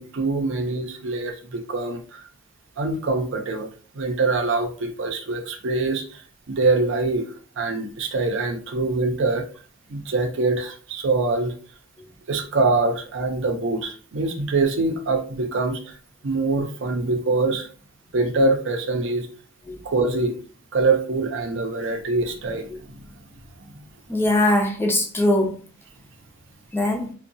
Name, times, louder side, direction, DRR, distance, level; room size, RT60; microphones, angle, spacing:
voice 1, 0.0-2.2 2.8-3.7 3.9-6.2 6.5-9.5 9.9-11.5 12.3-16.0 16.2-17.7 18.1-19.3 19.8-20.4 20.7-23.0 23.6-23.7, right 3 dB, 65° right, 0.5 m, -24 dB
voice 2, 24.1-25.6 26.7-27.1, left 1 dB, 10° left, 0.3 m, -21 dB
2.7 x 2.1 x 2.6 m
head